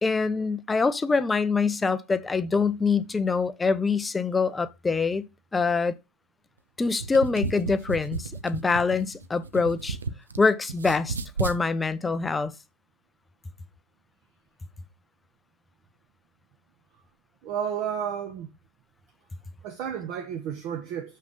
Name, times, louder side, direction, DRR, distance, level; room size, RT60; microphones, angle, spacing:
voice 1, 0.0-5.3 5.5-5.9 6.8-10.0 10.4-12.5, left 4 dB, 10° left, 0.6 m, -25 dB
sound 1, 6.9-10.4 10.7-11.6, right 5 dB, 70° right, 0.7 m, -33 dB
voice 2, 17.4-18.5 19.6-21.2, right 8 dB, 40° right, 1.3 m, -32 dB
6.7 x 6.0 x 5.5 m
figure-of-eight pair, 90°, 0 cm